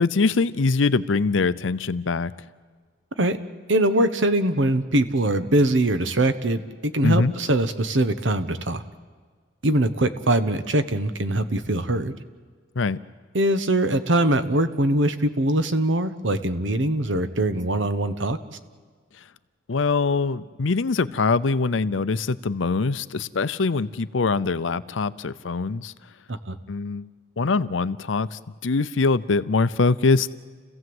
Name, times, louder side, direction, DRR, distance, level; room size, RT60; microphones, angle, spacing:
voice 1, 0.0-2.3 7.0-7.3 12.8-13.0 19.7-25.9 26.7-27.1 27.4-30.3, left 4 dB, 85° left, 15 dB, 0.6 m, -23 dB
voice 2, 3.7-8.8 9.6-12.1 13.3-18.4 26.3-26.6, right 1 dB, 80° right, 10 dB, 1.2 m, -22 dB
29.5 x 16.0 x 7.9 m, 1.5 s
head